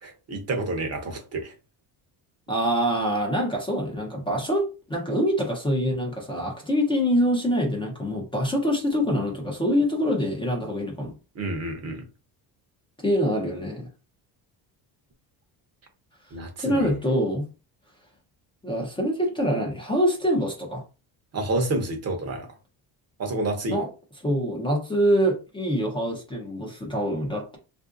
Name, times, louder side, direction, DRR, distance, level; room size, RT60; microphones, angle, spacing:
voice 1, 0.0-1.5 11.3-12.0 16.3-16.9 21.3-22.5 23.2-23.8, right 2 dB, 35° right, 0.8 m, -29 dB
voice 2, 2.5-11.1 13.0-13.9 16.6-17.4 18.6-20.8 23.7-23.9 24.2-27.6, equal, 10° left, 0.6 m, -25 dB
3.6 x 2.6 x 2.4 m
cardioid pair, 160°, 42 cm